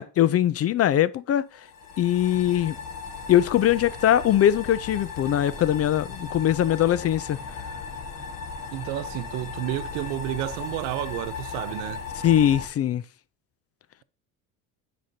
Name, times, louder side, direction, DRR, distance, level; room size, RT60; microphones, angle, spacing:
voice 1, 0.0-1.4 2.0-2.8 3.3-7.4 12.2-13.0, left 11 dB, 35° left, 0.4 m, -21 dB
sound 1, 1.5-12.7, left 5 dB, 55° left, 1.5 m, -37 dB
voice 2, 8.7-12.0, right 15 dB, 85° right, 0.6 m, -31 dB
9.1 x 5.1 x 2.7 m
supercardioid pair, 75°, 41 cm